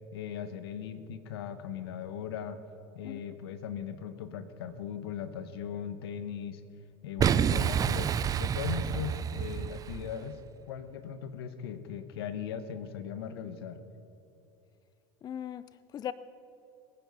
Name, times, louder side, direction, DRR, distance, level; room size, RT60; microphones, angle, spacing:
voice 1, 0.1-2.6 2.9-6.6 7.0-10.4 10.7-13.8, left 8 dB, 80° left, 12 dB, 1.2 m, -39 dB
Boom, 7.2-10.2, right 8 dB, 30° right, 0.5 m, -28 dB
voice 2, 15.2-16.1, left 10 dB, 30° left, 16 dB, 0.5 m, -39 dB
21.5 x 10.0 x 5.5 m, 2.8 s
hypercardioid pair, 100°, 13 cm